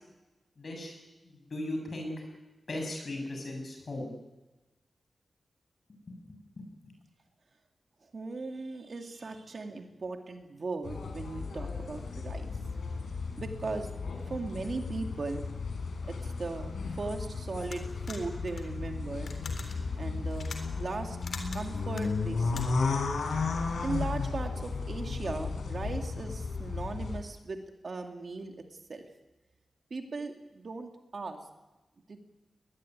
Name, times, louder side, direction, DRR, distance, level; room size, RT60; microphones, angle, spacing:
voice 1, 0.6-0.9 1.2-2.1 2.7-4.1 6.1-6.9, left 1 dB, 40° left, 2 dB, 8.0 m, -38 dB
voice 2, 8.0-12.5 13.4-13.9 14.3-15.4 16.1-19.3 20.0-20.5 20.8-21.2 21.5-22.7 23.8-28.6 28.9-29.1 29.9-31.4 32.1-32.2, right 3 dB, 45° right, 4 dB, 2.4 m, -38 dB
sound 1, 10.8-27.2, left 4 dB, 85° left, 5.4 m, -34 dB
sound 2, 17.6-23.0, left 4 dB, 60° left, 3.9 m, -45 dB
22.0 x 21.0 x 9.7 m, 1.1 s
wide cardioid pair, 170°, 0 cm